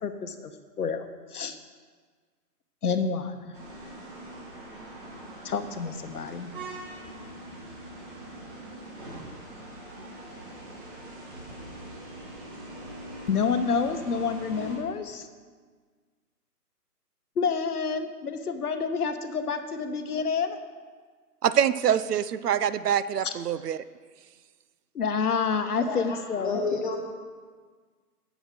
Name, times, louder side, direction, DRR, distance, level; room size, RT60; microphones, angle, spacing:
voice 1, 0.0-1.6 2.8-3.5 5.4-6.5 13.3-15.3 17.4-20.6 23.2-23.3 24.9-26.6, left 5 dB, 70° left, 8 dB, 1.0 m, -28 dB
sound 1, 3.5-14.8, right 1 dB, 35° right, 1.9 m, -42 dB
voice 2, 21.4-23.8, right 9 dB, 75° right, 16 dB, 0.6 m, -25 dB
voice 3, 25.8-27.0, left 3 dB, 30° left, 0 dB, 1.2 m, -30 dB
8.0 x 6.2 x 6.7 m, 1.5 s
hypercardioid pair, 170°, 47 cm